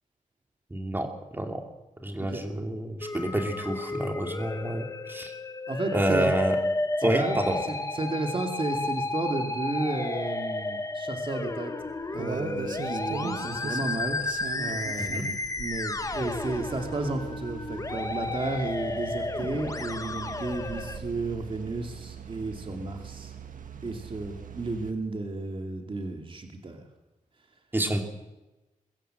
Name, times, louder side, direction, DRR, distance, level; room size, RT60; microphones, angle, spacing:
voice 1, 0.7-1.6 2.0-5.3 5.9-6.6 7.0-7.6 15.1-15.2 27.7-28.0, right 1 dB, 15° right, 4 dB, 2.8 m, -28 dB
Musical instrument, 3.0-21.0, left 2 dB, 25° left, 1.4 m, -32 dB
voice 2, 5.7-6.3 7.1-7.4 7.7-11.7 12.1-14.2 14.6-23.3 23.8-26.8, right 2 dB, 40° right, 4 dB, 2.5 m, -33 dB
sound 1, 11.8-24.9, right 6 dB, 75° right, 1.7 m, -41 dB
22.5 x 15.0 x 7.8 m, 1.1 s
wide cardioid pair, 130°, 14 cm